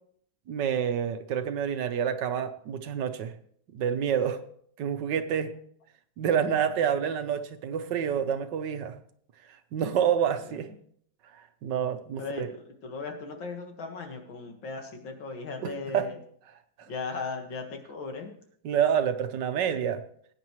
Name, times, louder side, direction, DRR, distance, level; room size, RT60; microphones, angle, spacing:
voice 1, 0.5-3.3 3.7-4.4 4.8-5.5 6.2-9.0 9.7-10.7 11.6-12.5 15.6-16.0 18.6-20.0, right 8 dB, 70° right, 9 dB, 1.4 m, -28 dB
voice 2, 12.2-16.2 16.9-18.3, left 4 dB, 75° left, 3 dB, 2.4 m, -37 dB
19.5 x 9.1 x 3.1 m, 0.62 s
omnidirectional pair, 2.1 m